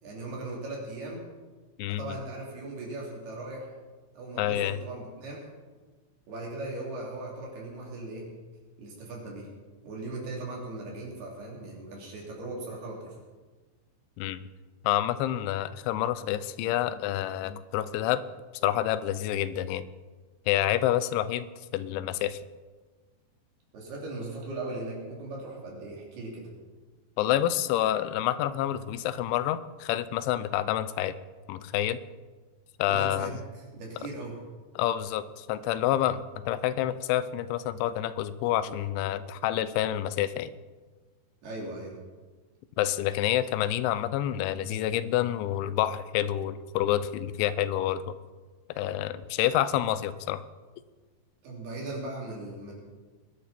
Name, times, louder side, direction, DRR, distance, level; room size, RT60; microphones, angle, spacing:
voice 1, 0.0-1.2 1.9-3.7 4.1-5.5 6.3-8.3 8.8-9.5 9.8-13.2 23.7-26.5 32.9-34.4 41.4-42.0 51.4-52.7, right 2 dB, 60° right, -3 dB, 4.9 m, -38 dB
voice 2, 1.8-2.2 4.4-4.8 14.2-14.4 14.8-18.2 18.6-19.9 20.5-21.5 21.7-22.4 27.2-31.2 31.5-32.0 32.8-33.4 34.8-40.5 42.8-48.0 48.7-50.4, left 12 dB, 90° left, 14 dB, 3.0 m, -28 dB
22.0 x 10.5 x 4.3 m, 1.3 s
omnidirectional pair, 5.2 m